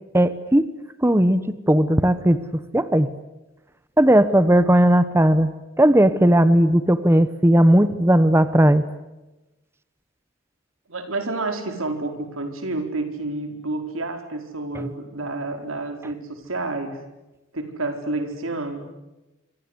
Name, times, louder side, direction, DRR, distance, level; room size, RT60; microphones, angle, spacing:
voice 1, 0.1-0.6 1.0-1.4 1.7-2.4 2.7-3.1 4.0-5.5 5.8-8.8 14.7-14.8, right 1 dB, 10° right, 13 dB, 1.0 m, -16 dB
voice 2, 10.9-17.0 17.5-18.9, right 2 dB, 90° right, 6 dB, 4.7 m, -29 dB
26.5 x 25.5 x 8.2 m, 1.0 s
head